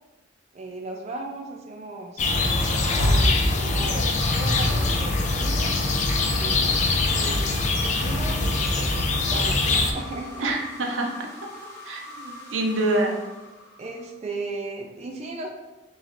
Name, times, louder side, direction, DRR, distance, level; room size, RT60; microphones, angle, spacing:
voice 1, 0.5-6.0 6.4-7.5 7.8-10.5 13.8-15.5, right 2 dB, 35° right, 1 dB, 0.4 m, -37 dB
sound 1, 2.2-9.9, left 2 dB, 40° left, 0.4 m, -23 dB
sound 2, 4.2-14.2, left 1 dB, 70° left, 0.9 m, -42 dB
voice 2, 10.4-11.1 11.8-13.2, right 2 dB, 90° right, 0 dB, 0.7 m, -26 dB
3.2 x 3.0 x 3.7 m, 1.1 s
head